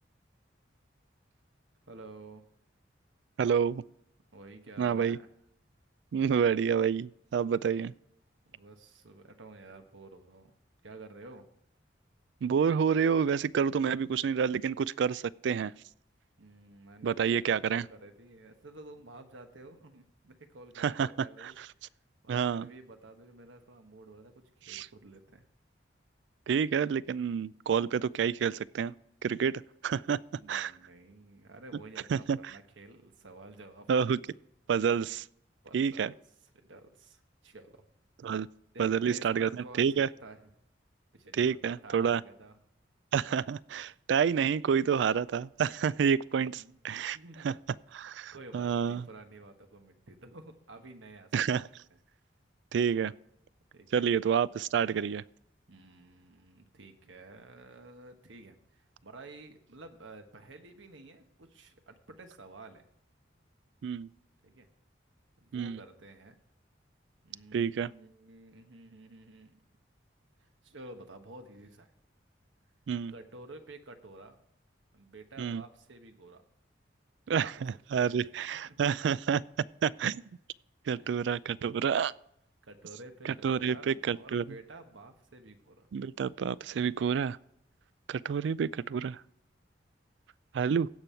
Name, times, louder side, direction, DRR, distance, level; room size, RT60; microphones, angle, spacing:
voice 1, 1.9-2.4 4.3-5.3 8.5-10.6 10.8-11.5 16.4-21.6 22.2-25.4 30.4-34.1 35.6-36.1 36.5-37.8 38.7-40.5 41.1-42.5 46.1-46.8 47.1-47.6 48.3-51.5 53.7-54.1 55.7-62.8 64.4-64.7 65.4-66.4 67.2-69.6 70.4-71.9 73.1-74.4 74.9-76.4 77.4-77.5 78.0-78.2 78.5-78.9 81.0-81.2 82.6-85.9, right 2 dB, 85° right, 1.3 m, -51 dB
voice 2, 3.4-3.8 4.8-5.2 6.1-7.9 12.4-15.7 17.0-17.8 20.8-21.7 22.3-22.7 24.7-24.9 26.5-28.9 29.2-30.2 30.5-30.7 32.1-32.5 33.9-34.2 34.7-35.2 35.7-36.1 38.2-38.5 38.8-40.1 41.4-42.2 43.1-47.2 47.4-47.5 47.9-49.0 51.3-51.6 52.7-53.1 53.9-55.2 63.8-64.1 65.5-65.8 67.5-67.9 72.9-73.1 75.4-75.6 77.3-79.4 79.8-80.2 80.9-82.1 83.2-84.4 85.9-87.4 88.1-89.2 90.5-90.9, right 7 dB, 70° right, 0.3 m, -29 dB
16.0 x 5.4 x 4.4 m
head